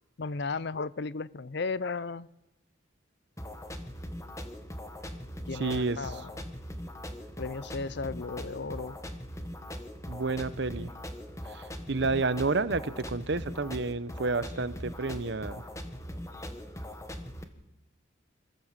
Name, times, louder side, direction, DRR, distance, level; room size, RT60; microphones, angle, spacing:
voice 1, 0.2-2.3 5.5-6.2 7.4-9.0, left 4 dB, 55° left, 19 dB, 0.6 m, -34 dB
sound 1, 3.4-17.4, equal, 15° left, 1.4 m, -41 dB
voice 2, 5.5-6.2 10.1-10.9 11.4-15.7, right 3 dB, 60° right, 15 dB, 0.9 m, -30 dB
25.5 x 14.5 x 7.5 m, 0.98 s
head